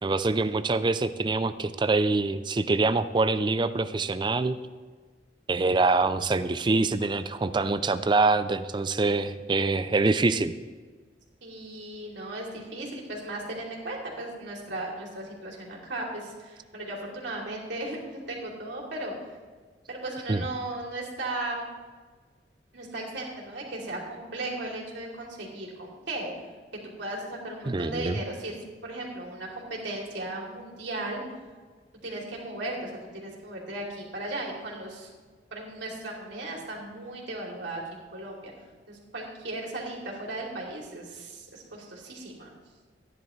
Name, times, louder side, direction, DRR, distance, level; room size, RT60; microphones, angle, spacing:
voice 1, 0.0-4.6 5.5-10.5 20.3-20.5 27.7-28.2, right 3 dB, 25° right, 12 dB, 0.4 m, -25 dB
voice 2, 11.4-19.1 19.9-21.7 22.7-26.3 26.8-28.5 28.8-31.2 32.0-35.1 35.5-38.5 38.9-42.5, right 2 dB, 90° right, -3 dB, 2.9 m, -36 dB
14.5 x 10.5 x 3.2 m, 1.4 s
head